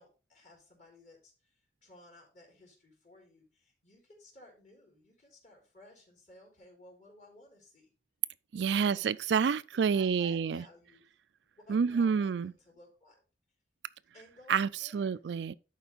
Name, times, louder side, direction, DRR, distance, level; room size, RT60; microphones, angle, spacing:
voice 1, 0.0-7.9 8.7-9.1 9.9-11.1 11.6-13.2 14.1-15.2, left 2 dB, 40° left, 3.7 m, -57 dB
voice 2, 8.5-10.6 11.7-12.5 14.5-15.5, right 6 dB, 75° right, 0.4 m, -28 dB
11.5 x 4.5 x 4.1 m
head